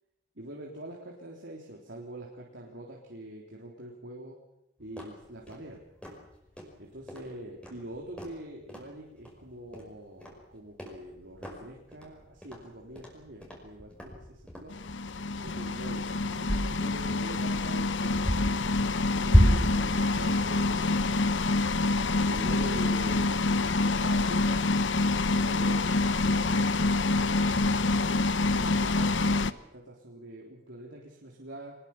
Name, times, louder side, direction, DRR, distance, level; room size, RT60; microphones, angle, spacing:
voice 1, 0.4-4.4 4.8-5.8 6.8-14.7 15.4-18.3 19.1-21.2 22.3-25.9 26.1-27.9 28.3-31.8, right 1 dB, 75° right, -1 dB, 3.6 m, -44 dB
sound 1, 4.8-23.1, equal, 5° left, 5.5 m, -33 dB
sound 2, 14.7-29.5, left 3 dB, 90° left, 0.9 m, -27 dB
24.0 x 20.5 x 7.3 m, 0.84 s
head